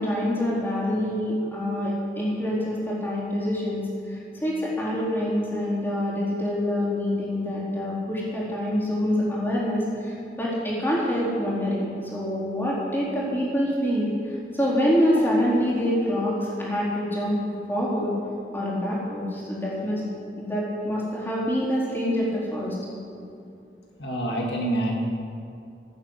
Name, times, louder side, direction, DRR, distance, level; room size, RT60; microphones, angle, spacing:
voice 1, 0.0-16.3 16.6-17.4 17.7-18.1 18.5-20.0 20.4-22.8, equal, 10° left, -6 dB, 4.0 m, -26 dB
voice 2, 24.0-24.9, right 1 dB, 75° left, -1 dB, 2.2 m, -27 dB
16.0 x 8.6 x 8.1 m, 2.5 s
head